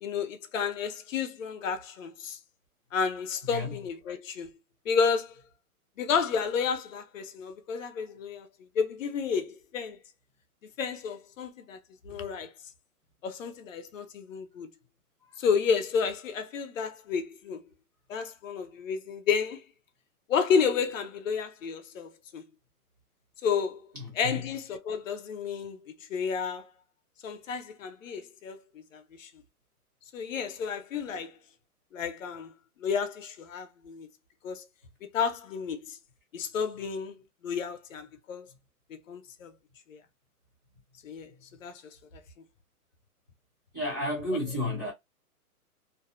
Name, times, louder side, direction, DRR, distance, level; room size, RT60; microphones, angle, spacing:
voice 1, 0.0-2.4 2.9-4.5 4.9-5.3 6.0-8.5 8.8-10.0 10.8-11.8 12.0-12.5 13.2-14.7 15.4-17.6 18.1-19.6 20.3-22.4 23.4-23.8 24.2-25.8 26.1-26.7 27.2-28.6 28.9-29.3 30.1-31.3 31.9-32.5 32.8-34.1 34.4-34.6 35.0-36.0 36.3-37.2 37.4-38.5 39.1-39.5 39.9-40.0 41.0-41.3 41.6-41.7, left 6 dB, 60° left, 0.6 m, -31 dB
voice 2, 23.9-24.4 43.7-44.9, left 1 dB, 15° right, 0.5 m, -32 dB
2.5 x 2.0 x 2.4 m
hypercardioid pair, 160°, 45 cm